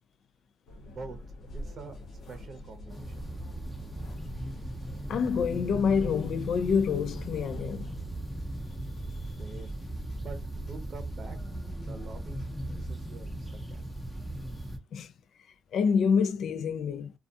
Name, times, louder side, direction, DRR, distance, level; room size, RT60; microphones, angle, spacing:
sound 1, 0.7-8.1, left 1 dB, 90° left, 1.0 m, -46 dB
voice 1, 0.9-1.2 1.5-3.6 9.2-9.7 10.2-11.5 11.8-12.4 12.7-14.0, right 4 dB, 50° right, 0.6 m, -46 dB
sound 2, 1.4-12.9, left 1 dB, 50° left, 0.9 m, -49 dB
sound 3, 2.9-14.8, right 1 dB, 5° left, 0.6 m, -38 dB
voice 2, 5.1-7.9 14.9-15.1 15.7-17.1, left 6 dB, 65° left, 0.3 m, -27 dB
2.3 x 2.3 x 2.6 m
cardioid pair, 90°, 0 cm